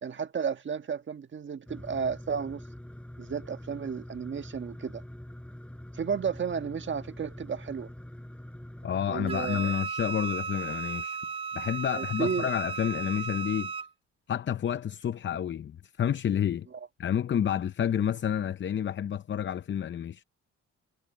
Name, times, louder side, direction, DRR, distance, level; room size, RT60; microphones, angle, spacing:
voice 1, 0.0-2.6 3.2-5.0 5.9-7.9 9.1-9.7 11.9-12.5, right 6 dB, 40° right, 1.5 m, -33 dB
sound 1, 1.7-9.1, left 1 dB, 5° left, 4.2 m, -45 dB
voice 2, 8.8-11.2 11.5-13.7 14.3-16.7 17.0-20.2, left 9 dB, 40° left, 0.6 m, -29 dB
Wind instrument woodwind instrument, 9.3-13.9, right 5 dB, 20° right, 0.4 m, -35 dB
cardioid pair, 90°, 30 cm